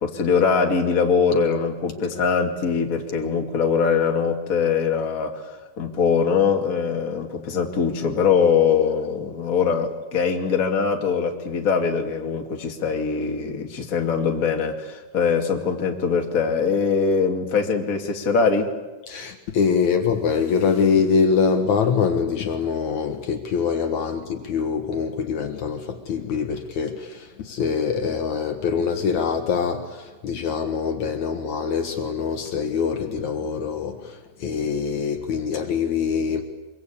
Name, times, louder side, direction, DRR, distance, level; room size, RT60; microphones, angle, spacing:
voice 1, 0.0-18.7, left 5 dB, 30° left, 2.2 m, -22 dB
voice 2, 19.1-36.4, left 6 dB, 65° left, 2.7 m, -24 dB
24.0 x 23.0 x 8.5 m
omnidirectional pair, 3.8 m